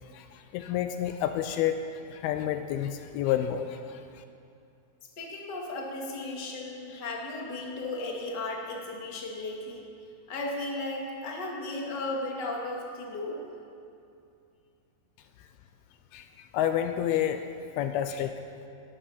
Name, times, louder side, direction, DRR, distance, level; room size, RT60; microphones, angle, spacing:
voice 1, 0.1-4.0 16.1-17.4 17.8-18.3, left 10 dB, 85° left, 8 dB, 2.5 m, -29 dB
voice 2, 5.2-9.9 10.3-13.4, left 2 dB, 35° left, -1 dB, 2.1 m, -35 dB
19.0 x 12.0 x 5.8 m, 2.6 s
omnidirectional pair, 4.6 m